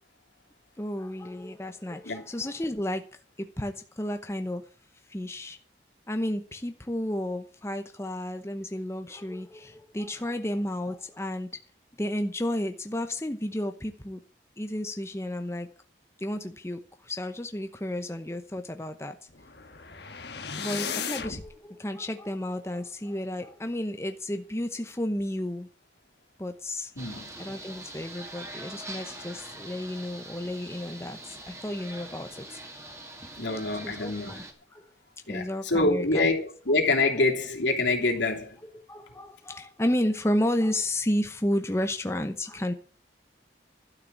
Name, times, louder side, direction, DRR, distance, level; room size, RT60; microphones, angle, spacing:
voice 1, 0.8-3.0 3.4-4.6 5.1-5.6 6.1-11.5 12.0-14.2 14.6-15.7 16.2-19.2 20.6-25.7 26.4-26.9 27.4-32.6 33.8-34.4 34.7-34.9 35.3-36.3 38.6-42.7, left 1 dB, 15° left, 0.8 m, -32 dB
sound 1, 19.3-21.5, left 6 dB, 65° left, 1.4 m, -35 dB
sound 2, 27.0-34.5, right 1 dB, 15° right, 2.2 m, -43 dB
voice 2, 33.4-34.3 35.3-38.6, left 2 dB, 85° left, 3.1 m, -26 dB
12.0 x 6.6 x 8.3 m
head